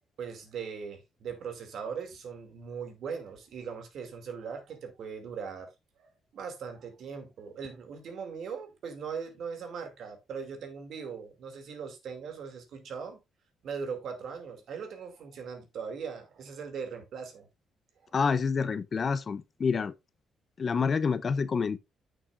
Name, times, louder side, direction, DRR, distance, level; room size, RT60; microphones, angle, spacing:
voice 1, 0.2-5.7 6.0-6.1 6.3-13.2 13.6-17.5 18.0-18.1, right 6 dB, 70° right, 2.4 m, -40 dB
voice 2, 18.1-19.9 20.6-21.8, left 5 dB, 45° left, 0.6 m, -28 dB
9.6 x 6.4 x 2.5 m
cardioid pair, 90°, 0 cm